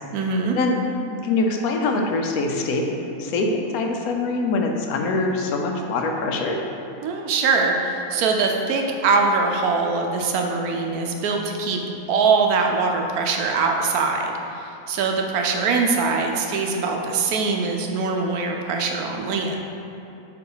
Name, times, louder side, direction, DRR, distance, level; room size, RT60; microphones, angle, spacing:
voice 1, 0.1-0.6 7.0-11.8 12.1-19.6, right 4 dB, 70° right, 2 dB, 1.1 m, -22 dB
voice 2, 1.1-6.6, left 3 dB, 70° left, 2 dB, 1.1 m, -24 dB
4.6 x 4.2 x 5.5 m, 2.9 s
omnidirectional pair, 1.7 m